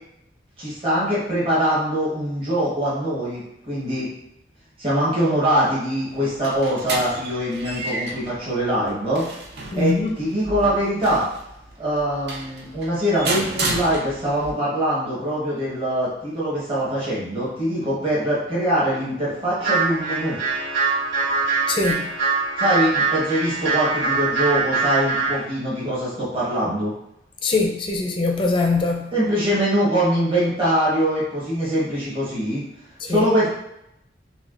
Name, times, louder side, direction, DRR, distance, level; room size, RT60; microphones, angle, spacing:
voice 1, 0.6-4.1 4.8-9.2 9.7-9.9 10.2-11.2 11.8-20.4 22.6-26.9 29.1-32.6 33.1-33.5, equal, 30° right, -9 dB, 1.2 m, -23 dB
sound 1, 6.1-14.5, right 2 dB, 65° right, 0.5 m, -32 dB
voice 2, 9.7-10.2 21.7-22.1 27.4-29.1 33.0-33.3, left 3 dB, 25° left, 3 dB, 0.4 m, -22 dB
sound 2, 19.6-25.4, right 4 dB, 85° right, 1.1 m, -23 dB
5.7 x 2.2 x 2.5 m, 0.81 s
head